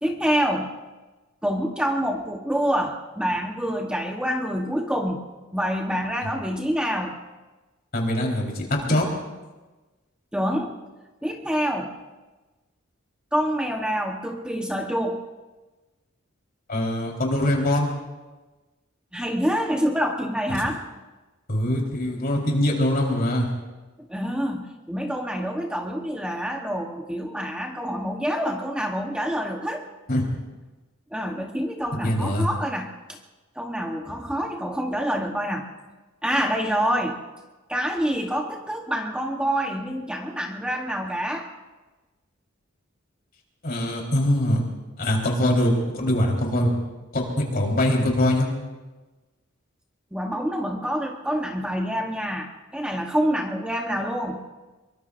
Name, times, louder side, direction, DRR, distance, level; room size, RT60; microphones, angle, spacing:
voice 1, 0.0-0.7 1.4-5.2 5.5-7.2 10.3-10.7 11.2-11.9 13.3-15.2 19.1-20.8 24.1-29.8 31.1-33.2 33.6-35.7 36.2-37.2 37.7-41.5 50.1-54.4, equal, 5° right, 2 dB, 1.0 m, -26 dB
voice 2, 7.9-9.1 16.7-17.9 21.5-23.5 30.1-30.3 32.0-32.5 43.6-44.6 45.0-46.7 47.1-48.5, left 1 dB, 45° left, -1 dB, 3.9 m, -23 dB
24.5 x 23.0 x 2.5 m, 1.2 s
head